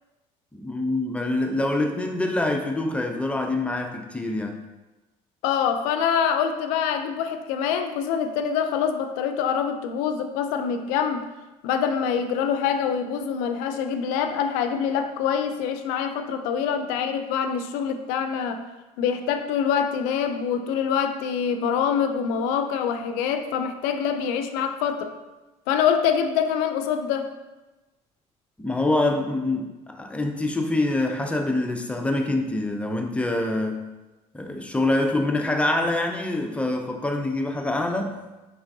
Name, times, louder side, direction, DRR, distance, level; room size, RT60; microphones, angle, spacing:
voice 1, 0.5-4.6 28.6-33.8 34.3-38.2, left 2 dB, 10° left, 3 dB, 0.4 m, -25 dB
voice 2, 5.4-11.3 11.6-18.6 19.0-25.1 25.7-27.3, left 7 dB, 85° left, 8 dB, 0.4 m, -25 dB
4.4 x 3.2 x 2.6 m, 1.1 s
supercardioid pair, 100°, 14 cm